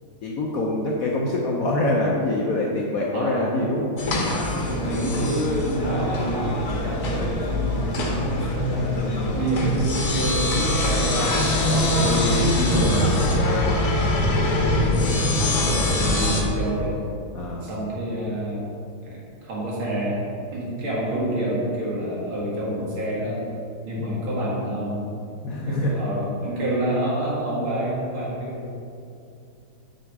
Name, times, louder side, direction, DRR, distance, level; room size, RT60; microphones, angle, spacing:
voice 1, 0.2-4.0 12.6-12.9 17.3-17.7 24.0-24.1 25.4-26.0, left 2 dB, 65° left, -2 dB, 0.9 m, -25 dB
voice 2, 3.1-3.5 4.5-13.8 14.2-17.0 17.6-18.7 19.0-23.4 23.8-25.0 25.7-28.6, right 1 dB, 80° right, -6 dB, 2.7 m, -28 dB
sound 1, 4.0-16.4, left 1 dB, 50° left, 1.2 m, -23 dB
6.6 x 5.7 x 4.7 m, 2.6 s
omnidirectional pair, 2.2 m